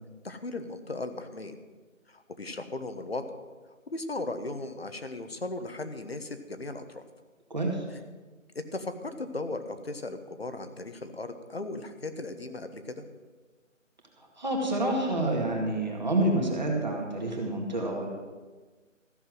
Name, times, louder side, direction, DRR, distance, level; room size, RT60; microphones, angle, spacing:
voice 1, 0.2-1.6 2.1-3.2 3.9-7.1 7.9-8.0 8.5-13.1, left 2 dB, 50° left, 8 dB, 1.2 m, -37 dB
voice 2, 7.5-7.8 14.2-18.1, right 1 dB, 35° right, 0 dB, 2.2 m, -28 dB
14.5 x 6.9 x 7.7 m, 1.3 s
figure-of-eight pair, 180°, 40 cm